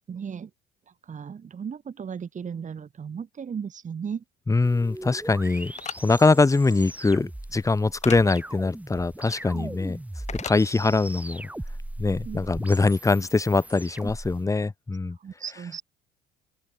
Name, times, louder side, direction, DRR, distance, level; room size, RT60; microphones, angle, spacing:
voice 1, 0.1-0.5 1.0-4.2 9.5-9.8 12.2-12.4 15.2-15.8, right 7 dB, 35° right, 3.4 m, -35 dB
voice 2, 4.5-5.7 6.0-10.0 10.4-11.5 12.0-15.2, left 3 dB, 15° left, 1.2 m, -23 dB
sound 1, 4.6-14.4, right 1 dB, 5° right, 4.3 m, -39 dB
sound 2, 5.8-6.0 8.0-8.2 10.3-10.6, left 7 dB, 35° left, 1.3 m, -34 dB
open air
hypercardioid pair, 70°, 21 cm